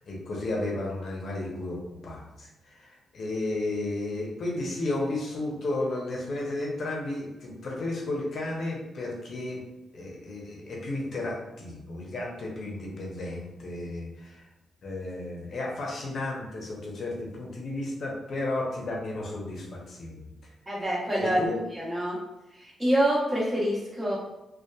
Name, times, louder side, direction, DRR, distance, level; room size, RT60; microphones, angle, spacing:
voice 1, 0.0-9.6 9.9-14.5 14.8-20.2 21.2-21.6, left 2 dB, 60° left, -2 dB, 0.6 m, -33 dB
voice 2, 20.7-21.4 21.8-22.2 22.6-24.2, right 1 dB, 20° right, -5 dB, 0.9 m, -26 dB
2.7 x 2.2 x 2.2 m, 0.96 s
cardioid pair, 85°, 0 cm